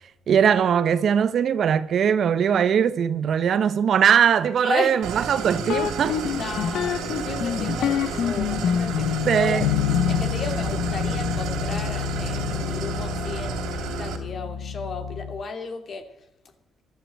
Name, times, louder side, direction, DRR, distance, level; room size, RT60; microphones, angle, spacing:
voice 1, 0.3-6.2 9.2-9.7, right 8 dB, 60° right, 1.1 m, -20 dB
voice 2, 4.6-5.0 5.4-5.5 6.3-9.7 10.1-16.3, left 4 dB, 50° left, 2.9 m, -34 dB
Idling, 5.0-14.2, right 6 dB, 90° right, 3.1 m, -32 dB
sound 1, 5.7-15.4, left 9 dB, 80° left, 1.1 m, -27 dB
14.0 x 12.0 x 7.8 m
cardioid pair, 90°, 0 cm